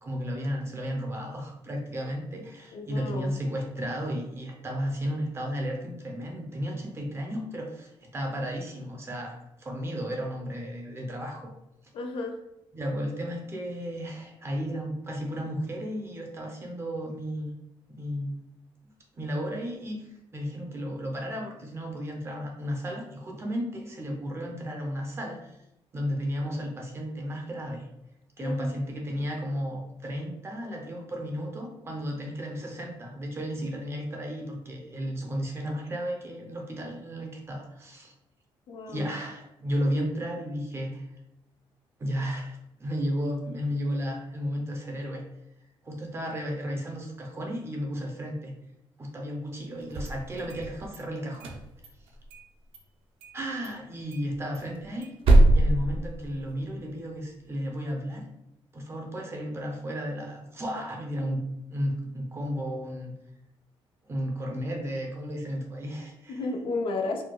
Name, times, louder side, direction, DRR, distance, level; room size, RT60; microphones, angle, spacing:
voice 1, 0.0-11.5 12.7-17.5 17.9-18.3 19.1-25.6 25.9-27.9 28.4-38.1 38.9-41.1 42.0-45.2 45.8-48.5 49.0-51.5 53.3-55.1 55.5-58.2 58.7-61.4 61.7-63.1 64.1-66.4, equal, 25° right, 1 dB, 0.6 m, -33 dB
voice 2, 2.7-3.4 11.9-12.4 28.4-28.8 38.7-39.1 66.3-67.2, left 3 dB, 60° left, 3 dB, 0.4 m, -33 dB
sound 1, 49.8-51.0 51.3-52.5 52.7-52.8 53.2-53.4 53.6-53.7 54.1-56.7, right 1 dB, 70° right, 0.5 m, -23 dB
4.5 x 2.2 x 2.2 m, 0.88 s
cardioid pair, 160°, 10 cm